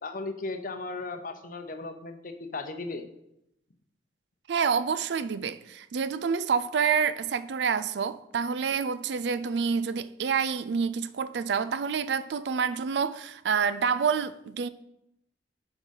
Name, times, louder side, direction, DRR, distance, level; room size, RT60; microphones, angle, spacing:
voice 1, 0.0-3.1, left 3 dB, 50° left, 0.8 m, -36 dB
voice 2, 4.5-14.7, right 6 dB, 75° right, 0.4 m, -28 dB
6.4 x 4.9 x 5.4 m
head